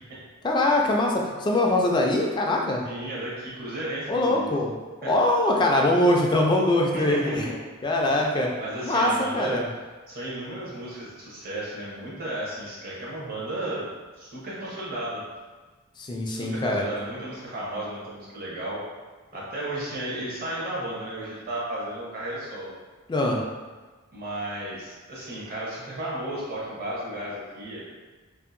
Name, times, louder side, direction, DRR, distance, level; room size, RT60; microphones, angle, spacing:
voice 1, 0.4-2.8 4.1-4.7 5.1-7.5 7.8-8.5 8.8-9.6 16.0-16.8 23.1-23.4, left 1 dB, 20° left, 0 dB, 0.3 m, -22 dB
voice 2, 2.8-4.5 5.0-5.1 6.9-7.5 8.6-9.6 10.1-13.9 14.2-15.2 16.3-18.8 19.3-22.7 24.1-27.9, right 1 dB, 45° right, -7 dB, 0.8 m, -34 dB
2.7 x 2.5 x 2.5 m, 1.3 s
head